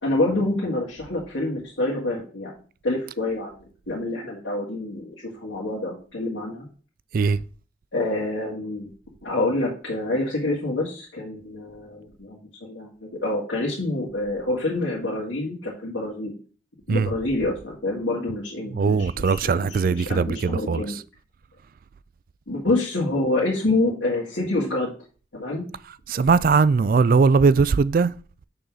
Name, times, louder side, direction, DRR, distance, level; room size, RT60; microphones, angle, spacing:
voice 1, 0.0-2.5 2.8-3.5 3.9-5.2 5.4-6.7 7.9-8.9 9.2-16.3 16.9-21.0 22.5-24.9 25.3-25.7, left 2 dB, 85° left, 2.1 m, -27 dB
voice 2, 18.8-20.8 26.1-28.1, right 5 dB, 50° right, 0.3 m, -19 dB
6.6 x 4.0 x 6.1 m
head